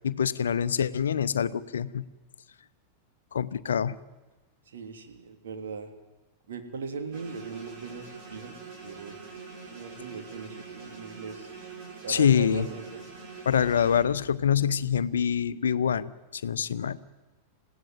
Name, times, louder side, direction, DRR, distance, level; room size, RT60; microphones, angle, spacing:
voice 1, 0.0-2.0 3.3-4.0 12.1-12.7 13.4-17.0, left 8 dB, 65° left, 14 dB, 0.8 m, -25 dB
voice 2, 4.7-5.9 6.5-9.1 9.7-11.6 12.0-13.0, right 5 dB, 60° right, 5 dB, 3.0 m, -39 dB
sound 1, 7.1-14.0, right 5 dB, 40° right, 6.0 m, -44 dB
27.5 x 16.5 x 9.4 m, 1.2 s
figure-of-eight pair, 90°, 0 cm